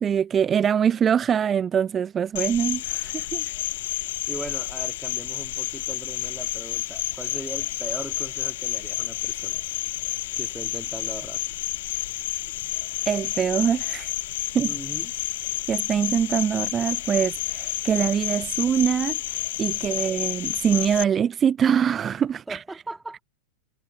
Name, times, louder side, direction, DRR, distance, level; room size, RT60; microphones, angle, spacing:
voice 1, 0.0-3.5 13.1-14.1 14.5-14.7 15.7-22.6, right 8 dB, 25° right, 0.5 m, -23 dB
Cricket, 2.3-21.0, left 16 dB, 55° left, 0.5 m, -30 dB
voice 2, 4.3-9.6 10.3-11.4 14.6-15.1 19.9-20.1 22.5-23.2, right 2 dB, 5° right, 2.9 m, -39 dB
figure-of-eight pair, 90°, 0 cm